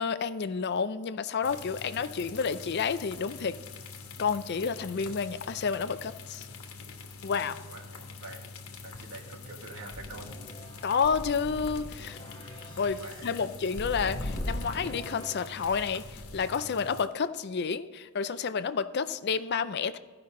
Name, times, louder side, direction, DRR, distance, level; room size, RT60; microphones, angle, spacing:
voice 1, 0.0-3.6 4.2-6.5 7.2-7.6 10.8-12.2 12.8-20.0, left 5 dB, 50° left, 13 dB, 0.4 m, -30 dB
sound 1, 1.4-17.1, left 4 dB, 90° left, 1.3 m, -45 dB
voice 2, 7.6-8.4 8.8-10.4 12.9-13.3, right 2 dB, 80° right, 1 dB, 1.9 m, -45 dB
sound 2, 9.9-16.6, left 1 dB, 25° left, 1.1 m, -40 dB
14.5 x 5.7 x 3.8 m, 1.4 s
head